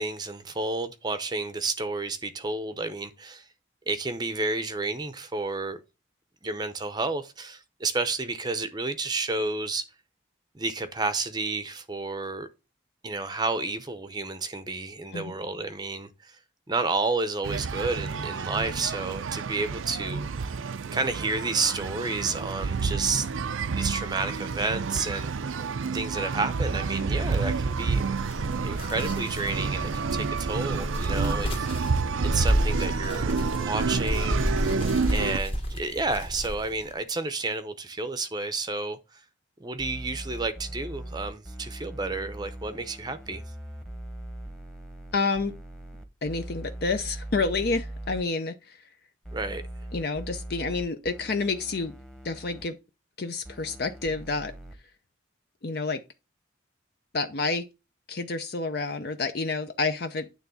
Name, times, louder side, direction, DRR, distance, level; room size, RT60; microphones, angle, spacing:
voice 1, 0.0-3.5 3.9-5.8 6.4-9.8 10.5-12.5 13.0-16.4 16.7-20.5 20.9-23.3 23.7-25.3 25.9-28.2 28.6-31.7 32.2-34.7 35.1-39.2 39.6-43.4 49.3-49.6, right 3 dB, 20° right, 0.6 m, -31 dB
sound 1, 17.4-35.4, right 5 dB, 85° right, 0.5 m, -29 dB
sound 2, 27.9-36.9, equal, 30° left, 1.2 m, -31 dB
sound 3, 39.8-48.2 49.2-52.6 53.4-54.7, right 1 dB, 5° left, 1.0 m, -40 dB
voice 2, 45.1-45.5 46.2-48.8 49.9-51.9 52.2-52.8 53.2-54.5 55.6-56.0 57.1-57.7 58.1-60.3, left 3 dB, 50° left, 0.6 m, -29 dB
9.2 x 3.5 x 6.9 m
head